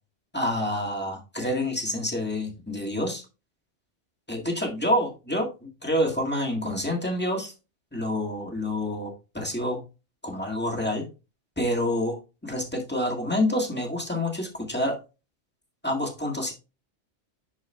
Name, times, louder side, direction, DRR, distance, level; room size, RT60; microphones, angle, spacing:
voice 1, 0.3-3.2 4.3-7.5 7.9-9.8 10.2-11.0 11.6-12.2 12.4-15.0 15.8-16.5, left 1 dB, 10° left, 0 dB, 1.8 m, -27 dB
11.5 x 4.6 x 2.2 m, 0.29 s
omnidirectional pair, 1.2 m